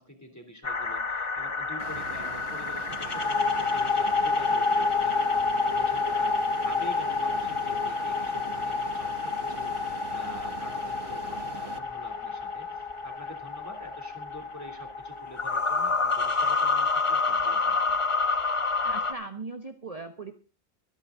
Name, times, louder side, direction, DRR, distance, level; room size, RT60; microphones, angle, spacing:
voice 1, 0.0-18.0, equal, 15° left, 5 dB, 3.2 m, -46 dB
sound 1, 0.6-19.1, left 4 dB, 30° left, 1.0 m, -28 dB
Fixed-wing aircraft airplane, 1.8-11.8, right 7 dB, 70° right, 1.3 m, -43 dB
voice 2, 18.8-20.3, right 3 dB, 35° right, 6 dB, 1.2 m, -38 dB
24.5 x 9.9 x 3.8 m, 0.32 s
omnidirectional pair, 1.1 m